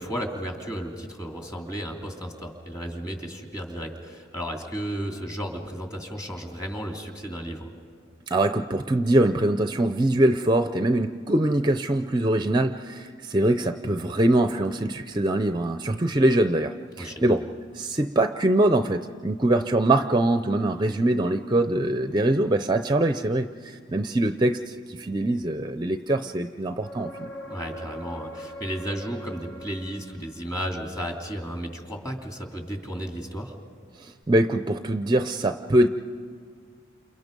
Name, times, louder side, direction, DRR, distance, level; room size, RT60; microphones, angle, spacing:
voice 1, 0.0-7.7 17.0-17.4 27.5-33.5, equal, 20° left, 2 dB, 2.7 m, -34 dB
voice 2, 8.3-17.5 17.7-27.3 34.0-35.9, right 1 dB, 20° right, 8 dB, 0.5 m, -23 dB
sound 1, 26.8-30.6 34.2-34.3, equal, 60° left, 1.7 m, -41 dB
29.5 x 28.5 x 5.3 m, 2.1 s
head